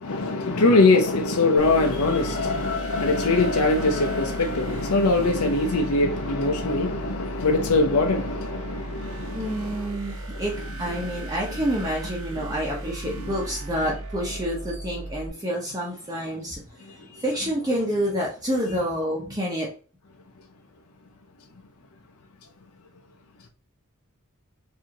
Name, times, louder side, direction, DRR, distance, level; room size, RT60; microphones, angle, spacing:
voice 1, 0.0-9.9 12.3-12.5, left 3 dB, 85° left, 0.7 m, -22 dB
sound 1, 1.6-15.3, right 2 dB, 75° right, 1.0 m, -36 dB
voice 2, 2.4-3.1 9.3-10.5 10.8-16.6 17.2-19.7, equal, 15° right, 0.9 m, -28 dB
4.8 x 2.8 x 2.9 m
head